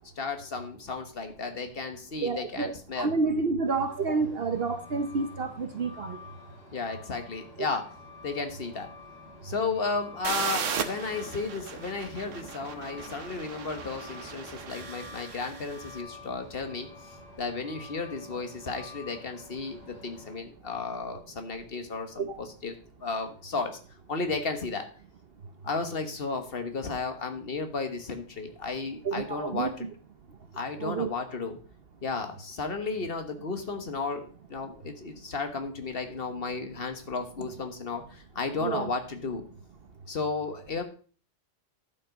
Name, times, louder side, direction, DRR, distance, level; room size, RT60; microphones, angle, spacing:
voice 1, 0.2-3.1 6.7-7.9 8.2-8.9 9.4-16.9 17.4-23.8 24.1-24.9 25.6-29.9 30.5-31.6 32.0-39.4 40.1-40.8, left 4 dB, 50° left, 7 dB, 1.5 m, -34 dB
voice 2, 2.2-2.7 3.0-6.2 22.3-22.4 29.0-29.7 30.8-31.1 38.6-38.9, right 4 dB, 55° right, 8 dB, 1.0 m, -29 dB
Truck, 3.7-20.4, left 3 dB, 35° left, 5.2 m, -49 dB
sound 1, 10.2-15.9, right 6 dB, 80° right, 1.3 m, -36 dB
11.5 x 5.7 x 5.1 m, 0.41 s
omnidirectional pair, 1.3 m